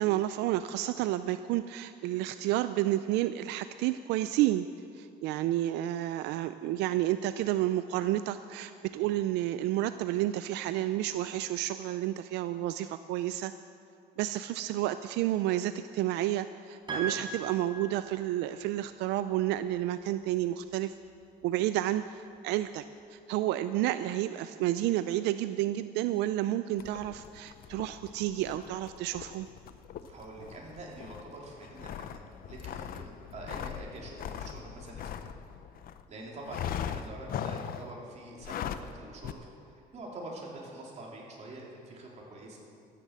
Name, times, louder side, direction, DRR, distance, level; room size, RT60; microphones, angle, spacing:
voice 1, 0.0-4.7 4.9-13.5 14.2-20.9 21.4-22.8 23.1-29.5, right 14 dB, 90° right, 12 dB, 0.4 m, -30 dB
Piano, 16.9-18.6, right 3 dB, 25° right, 4.6 m, -39 dB
sound 1, 26.8-36.0 36.5-37.9 38.4-38.9 39.2-39.3, left 9 dB, 60° left, 0.7 m, -40 dB
voice 2, 30.1-35.3 36.1-42.6, right 2 dB, 40° right, -2 dB, 3.7 m, -45 dB
13.5 x 10.0 x 7.6 m, 2.4 s
cardioid pair, 110°, 17 cm